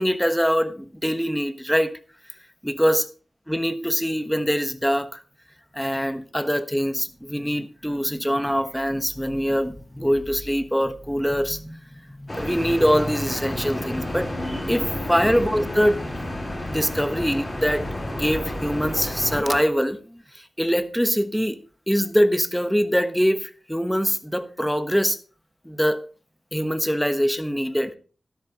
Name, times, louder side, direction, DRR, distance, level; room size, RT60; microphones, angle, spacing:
voice 1, 0.0-2.0 2.6-3.0 3.5-5.2 5.7-16.0 16.7-21.6 21.9-25.2 25.6-26.0 26.5-28.0, equal, ahead, 1.2 m, -23 dB
sound 1, 12.3-19.4, left 1 dB, 30° left, 3.9 m, -30 dB
13.0 x 11.5 x 3.0 m
wide cardioid pair, 70°, 0 cm